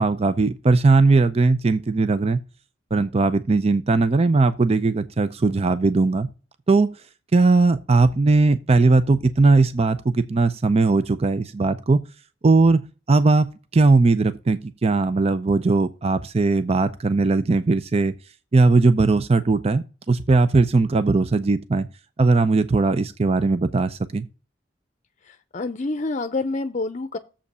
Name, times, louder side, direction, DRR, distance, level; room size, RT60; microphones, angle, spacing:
voice 1, 0.0-2.4 2.9-6.3 6.7-6.9 7.3-12.0 12.4-12.8 13.1-13.5 13.7-18.1 18.5-21.9 22.2-24.3, right 3 dB, 35° right, 0.5 m, -19 dB
voice 2, 25.2-27.2, left 3 dB, 40° left, 0.6 m, -27 dB
7.3 x 5.1 x 6.7 m
head